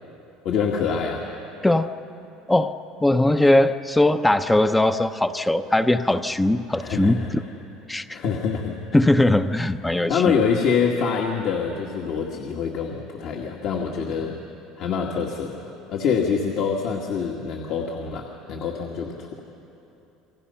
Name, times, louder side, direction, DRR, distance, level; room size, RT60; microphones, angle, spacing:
voice 1, 0.4-1.3 6.7-7.3 8.1-8.8 10.1-14.3 14.8-15.6 15.9-19.3, left 6 dB, 60° left, -1 dB, 2.0 m, -25 dB
voice 2, 2.5-7.2 7.9-8.2 8.9-10.3, left 1 dB, 10° left, 9 dB, 0.7 m, -20 dB
29.0 x 24.0 x 5.7 m, 2.9 s
cardioid pair, 125°, 0 cm